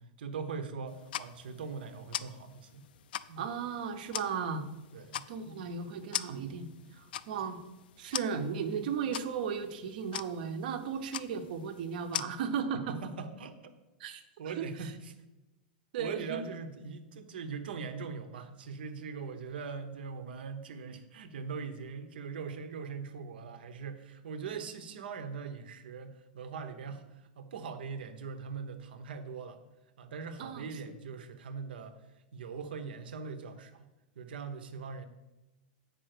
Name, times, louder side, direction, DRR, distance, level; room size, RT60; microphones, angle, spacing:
voice 1, 0.0-2.8 3.3-3.5 4.9-5.7 12.7-13.6 14.4-15.1 16.0-27.0 27.4-29.6 30.0-32.0 32.3-33.9 34.2-35.1, right 5 dB, 85° right, 9 dB, 1.1 m, -41 dB
sound 1, 0.9-12.2, left 11 dB, 75° left, 0.4 m, -43 dB
voice 2, 3.4-4.6 5.3-7.6 8.0-13.0 14.0-14.2 14.6-14.9 15.9-16.4 30.4-30.7, right 6 dB, 65° right, 8 dB, 1.0 m, -36 dB
7.9 x 5.3 x 6.7 m, 1.0 s
supercardioid pair, 155°, 5 cm